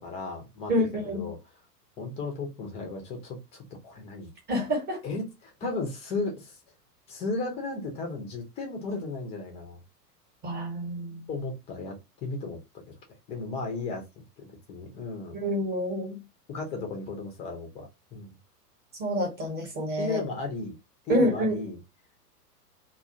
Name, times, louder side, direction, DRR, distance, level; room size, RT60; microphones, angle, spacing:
voice 1, 0.0-1.4 2.0-4.3 5.0-6.6 7.1-9.8 11.3-12.9 13.3-15.4 16.5-18.4 20.0-20.8 21.1-21.8, left 3 dB, 15° left, 0.5 m, -35 dB
voice 2, 0.7-1.3 4.5-5.0 10.4-11.3 15.3-16.2 19.0-20.2 21.1-21.6, equal, 20° right, 1.1 m, -27 dB
2.3 x 2.3 x 2.7 m
figure-of-eight pair, 100°, 48 cm